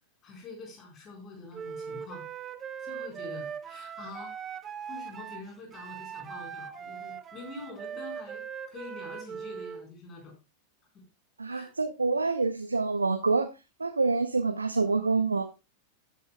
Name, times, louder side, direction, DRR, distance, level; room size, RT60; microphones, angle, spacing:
voice 1, 0.2-2.2 2.8-4.3 4.9-10.3 10.9-11.0 11.5-11.7, left 3 dB, 30° left, 1 dB, 4.4 m, -45 dB
Wind instrument woodwind instrument, 1.5-9.9, right 7 dB, 25° right, 0.7 m, -40 dB
voice 2, 11.4-13.5 13.8-15.4, right 3 dB, 80° right, 8 dB, 0.8 m, -27 dB
13.0 x 9.3 x 2.3 m, 0.27 s
figure-of-eight pair, 90°, 0 cm